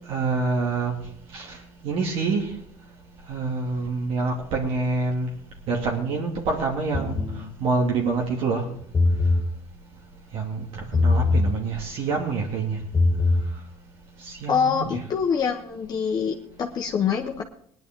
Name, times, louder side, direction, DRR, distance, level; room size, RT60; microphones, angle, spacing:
voice 1, 0.1-0.9 1.3-1.6 1.8-2.5 3.3-5.3 5.7-7.2 7.6-8.6 10.3-12.8 14.2-15.0, right 4 dB, 65° right, -1 dB, 2.6 m, -26 dB
sound 1, 6.9-7.4 8.8-9.5 10.9-11.5 12.8-13.5, left 3 dB, 25° left, 3.0 m, -21 dB
voice 2, 14.5-17.4, left 6 dB, 40° left, 0 dB, 1.3 m, -25 dB
18.5 x 10.5 x 3.7 m, 0.65 s
cardioid pair, 115°, 10 cm